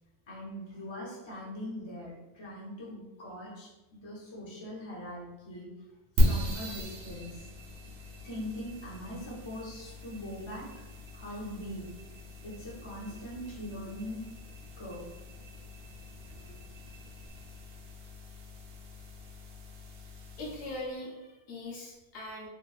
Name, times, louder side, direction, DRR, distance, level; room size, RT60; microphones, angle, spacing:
voice 1, 0.3-5.7 6.2-7.4 8.2-10.7 11.1-11.9 12.4-14.4 14.8-15.1 16.3-16.5, equal, 30° left, -5 dB, 0.6 m, -41 dB
sound 1, 6.2-20.9, equal, 70° right, 0.9 m, -36 dB
voice 2, 20.4-22.5, left 1 dB, 75° left, -3 dB, 1.0 m, -40 dB
3.0 x 2.5 x 2.3 m, 1.0 s
omnidirectional pair, 1.2 m